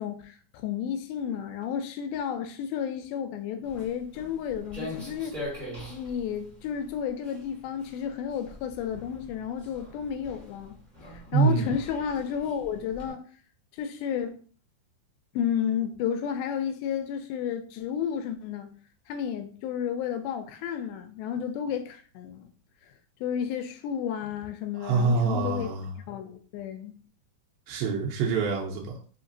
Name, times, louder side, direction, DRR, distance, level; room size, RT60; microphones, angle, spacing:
voice 1, 0.0-5.4 5.9-10.8 11.3-13.3 13.7-14.4 15.3-18.7 19.1-22.5 23.2-25.7 26.1-26.9, left 8 dB, 85° left, 2.4 m, -32 dB
Walk footsteps, 3.6-13.1, left 1 dB, 5° right, 1.1 m, -43 dB
voice 2, 11.3-11.7 24.8-25.9 27.7-29.0, right 4 dB, 85° right, 2.7 m, -25 dB
5.7 x 2.9 x 2.7 m
omnidirectional pair, 4.2 m